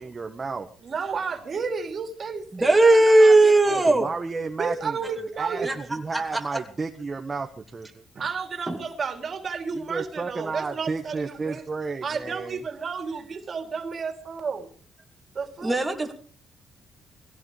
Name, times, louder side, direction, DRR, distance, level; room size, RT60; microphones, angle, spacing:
voice 1, 0.0-0.7 3.6-5.0 5.3-8.0 9.7-12.6, right 4 dB, 30° right, 4 dB, 1.5 m, -32 dB
voice 2, 0.8-3.9 4.6-5.7 8.1-11.6 12.0-14.7 15.3-15.8, right 5 dB, 45° right, 6 dB, 2.9 m, -32 dB
voice 3, 2.5-4.1 5.6-5.8 6.1-6.6 8.7-8.8 15.6-16.1, right 2 dB, 10° right, 2 dB, 2.7 m, -18 dB
22.0 x 16.5 x 3.4 m, 0.42 s
cardioid pair, 90°, 0 cm